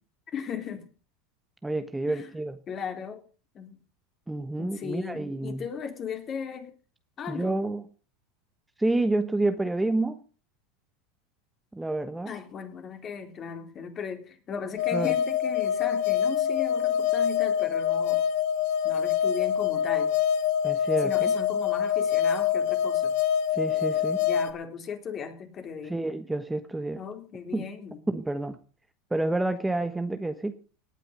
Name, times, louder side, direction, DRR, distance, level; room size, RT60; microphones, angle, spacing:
voice 1, 0.3-0.9 2.1-2.3 2.7-3.2 3.5-3.8 4.6-6.7 7.2-7.6 12.3-18.2 18.8-20.1 21.0-23.1 24.2-26.2 26.9-28.0, left 7 dB, 35° left, 5 dB, 3.7 m, -37 dB
voice 2, 1.6-2.6 4.3-5.7 7.3-7.8 8.8-10.2 11.7-12.3 14.9-15.2 20.6-21.3 23.5-24.2 25.9-27.0 27.5-27.7 28.1-28.6 29.1-30.5, right 2 dB, 10° right, 9 dB, 1.2 m, -29 dB
sound 1, 14.8-24.5, left 9 dB, 65° left, 1.6 m, -25 dB
18.5 x 9.1 x 5.3 m, 0.37 s
hypercardioid pair, 95°, 0 cm